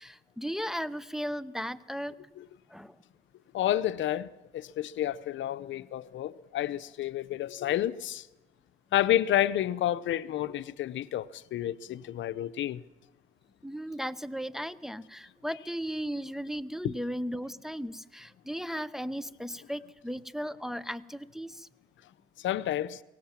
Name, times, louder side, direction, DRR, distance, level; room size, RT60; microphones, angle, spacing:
voice 1, 0.0-2.1 2.7-3.0 13.6-21.7, equal, ahead, 0.7 m, -36 dB
voice 2, 3.5-4.3 4.5-8.3 8.9-12.8 16.8-16.9 22.4-23.0, left 12 dB, 75° left, 0.7 m, -30 dB
23.0 x 18.0 x 7.4 m
cardioid pair, 90°, 20 cm